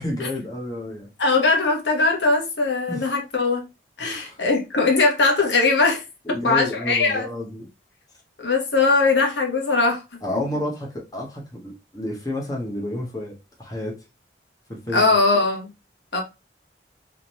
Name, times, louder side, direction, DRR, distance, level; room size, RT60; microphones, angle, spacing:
voice 1, 0.0-1.1 2.9-3.0 4.0-4.4 6.2-7.7 10.2-14.0 14.7-15.1, left 1 dB, 20° left, 1.3 m, -30 dB
voice 2, 1.2-3.6 4.0-6.0 6.3-7.3 8.4-10.0 14.9-15.7 16.1-16.2, left 3 dB, 90° left, 1.3 m, -20 dB
3.7 x 3.2 x 3.0 m
head